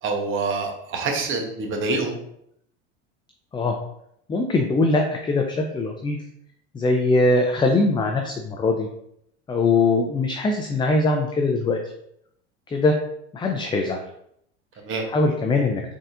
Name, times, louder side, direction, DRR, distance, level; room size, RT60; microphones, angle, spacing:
voice 1, 0.0-2.2 14.8-15.1, right 3 dB, 45° right, 3 dB, 1.1 m, -26 dB
voice 2, 4.3-6.2 6.7-8.9 9.5-11.8 12.7-12.9 13.3-14.0 15.1-15.8, left 3 dB, 15° left, 3 dB, 0.4 m, -21 dB
3.9 x 3.6 x 2.5 m, 0.74 s
supercardioid pair, 95°, 29 cm